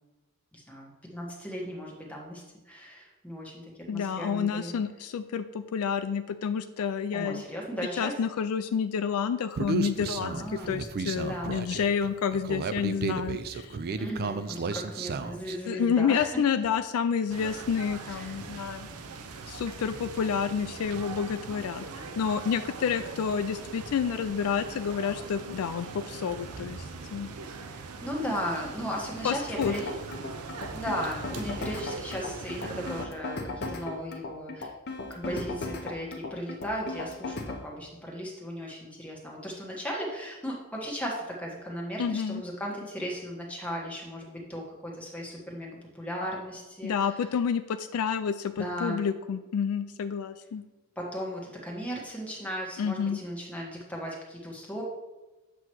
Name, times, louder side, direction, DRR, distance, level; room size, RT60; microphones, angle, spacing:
voice 1, 0.5-4.7 7.1-8.2 10.2-10.8 11.2-11.6 14.0-16.3 18.1-18.3 27.6-29.9 30.7-34.7 35.1-46.9 48.6-49.1 51.0-54.8, equal, 5° left, -3 dB, 1.4 m, -36 dB
voice 2, 3.9-7.4 8.0-10.3 10.7-13.8 15.7-18.9 19.5-27.3 29.2-29.7 42.0-42.4 46.8-50.6 52.8-53.2, left 7 dB, 70° left, 11 dB, 0.3 m, -29 dB
Human voice, 9.6-15.6, right 4 dB, 45° right, 0.4 m, -33 dB
sound 1, 17.3-33.1, right 4 dB, 85° right, 0.6 m, -41 dB
sound 2, 29.6-37.6, left 3 dB, 45° left, 0.8 m, -36 dB
7.6 x 3.0 x 6.1 m, 1.1 s
head